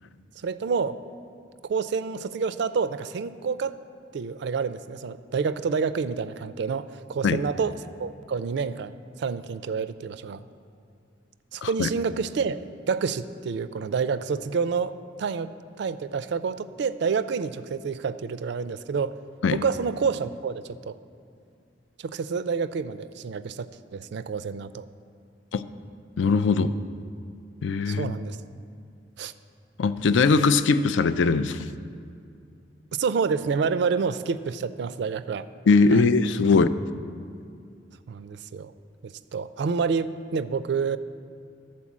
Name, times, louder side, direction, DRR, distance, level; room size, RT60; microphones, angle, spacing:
voice 1, 0.4-1.0 1.6-3.8 4.1-7.7 8.0-10.4 11.5-12.6 12.9-15.5 15.8-19.2 19.5-20.9 22.0-24.9 27.9-28.4 29.2-29.3 33.0-35.5 35.9-36.0 38.1-38.7 39.0-41.0, right 5 dB, 65° right, 14 dB, 0.4 m, -28 dB
voice 2, 26.2-26.7 27.6-28.1 29.8-31.7 35.7-36.8, left 4 dB, 85° left, 13 dB, 0.4 m, -21 dB
13.0 x 4.4 x 7.3 m, 2.4 s
head